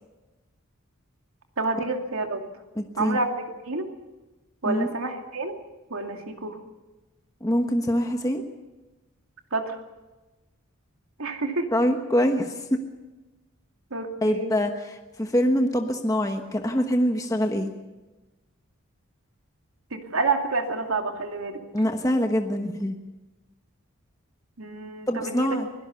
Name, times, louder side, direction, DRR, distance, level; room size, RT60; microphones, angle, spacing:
voice 1, 1.6-2.4 3.0-3.9 4.6-5.6 5.9-6.6 9.5-9.8 11.2-11.7 13.9-14.6 19.9-21.6 24.6-25.5, right 3 dB, 75° right, 4 dB, 2.5 m, -28 dB
voice 2, 2.8-3.2 4.7-4.9 7.4-8.4 11.7-12.8 14.2-14.7 15.2-17.7 21.7-23.0 25.1-25.7, equal, 15° left, 4 dB, 1.2 m, -24 dB
24.0 x 17.0 x 7.0 m, 1.1 s
head